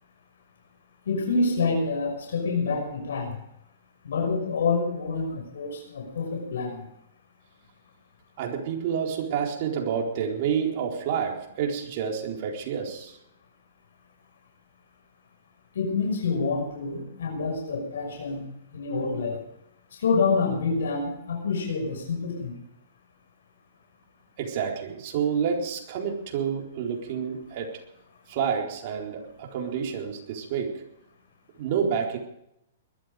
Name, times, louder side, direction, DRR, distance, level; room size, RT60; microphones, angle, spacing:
voice 1, 1.1-3.3 4.0-6.8 15.7-18.5 18.7-19.4 19.9-22.6, left 4 dB, 85° left, 6.1 m, -27 dB
voice 2, 8.4-13.2 24.4-27.8 28.3-30.9 31.6-32.2, right 7 dB, 50° right, 4.1 m, -29 dB
21.5 x 13.0 x 5.1 m
hypercardioid pair, 145°, 0 cm